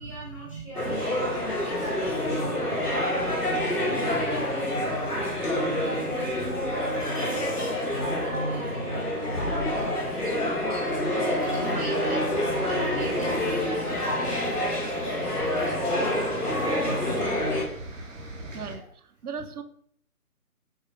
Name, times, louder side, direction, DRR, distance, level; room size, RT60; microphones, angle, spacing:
voice 1, 0.0-9.6 10.1-10.6 11.5-12.2 12.6-16.3 18.6-18.9, equal, 20° left, -7 dB, 0.8 m, -42 dB
sound 1, 0.8-17.6, left 1 dB, 85° left, 1.5 m, -27 dB
sound 2, 11.4-18.8, right 2 dB, 55° right, 1.0 m, -43 dB
voice 2, 16.8-17.2 18.5-18.9 19.2-19.6, right 5 dB, 75° right, 9 dB, 0.6 m, -37 dB
6.2 x 2.3 x 2.8 m, 0.64 s
figure-of-eight pair, 150°, 45 cm